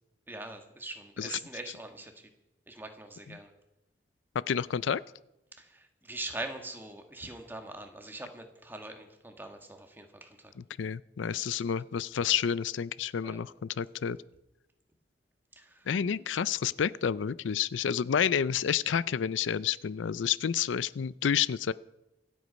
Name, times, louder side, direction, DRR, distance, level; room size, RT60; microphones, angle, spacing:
voice 1, 0.3-2.3 2.7-3.5 5.5-10.5 11.3-11.8 13.2-13.5 15.5-15.9, right 2 dB, 10° right, 4 dB, 1.6 m, -43 dB
voice 2, 4.5-5.0 10.8-14.2 15.9-21.7, left 8 dB, 90° left, 19 dB, 0.4 m, -29 dB
25.0 x 8.4 x 5.2 m, 0.92 s
head